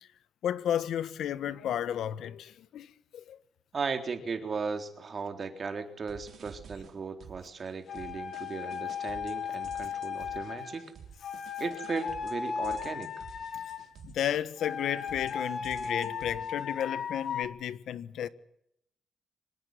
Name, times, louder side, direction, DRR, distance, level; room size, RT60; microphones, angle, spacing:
voice 1, 0.4-3.4 14.0-18.3, left 10 dB, 70° left, 1.4 m, -33 dB
voice 2, 3.7-10.9 11.6-13.2, right 5 dB, 35° right, 3.8 m, -36 dB
sound 1, 6.1-7.6 8.0-14.8 15.1-16.6, right 7 dB, 55° right, 3.8 m, -51 dB
sound 2, 7.9-10.8 11.2-13.9 14.6-17.5, left 7 dB, 50° left, 2.9 m, -36 dB
26.0 x 18.5 x 9.7 m
cardioid pair, 140°, 0 cm